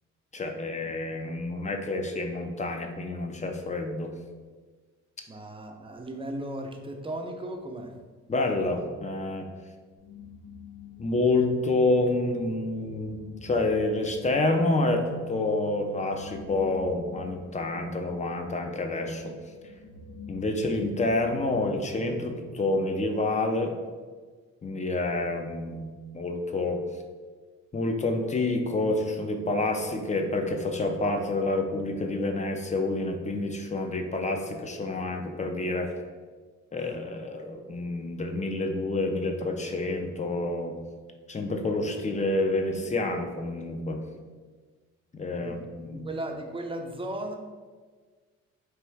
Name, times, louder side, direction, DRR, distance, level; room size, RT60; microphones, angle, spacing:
voice 1, 0.3-4.1 8.3-9.5 11.0-19.4 20.3-23.7 24.6-25.9 26.1-26.8 27.7-35.9 36.7-40.8 41.3-44.0 45.1-46.1, left 2 dB, 25° left, 4 dB, 0.5 m, -28 dB
voice 2, 5.3-7.9 45.4-47.4, right 1 dB, 20° right, 3 dB, 0.5 m, -36 dB
sound 1, 10.0-22.7, left 3 dB, 55° left, 0.9 m, -45 dB
3.3 x 3.0 x 4.6 m, 1.4 s
cardioid pair, 90°, 30 cm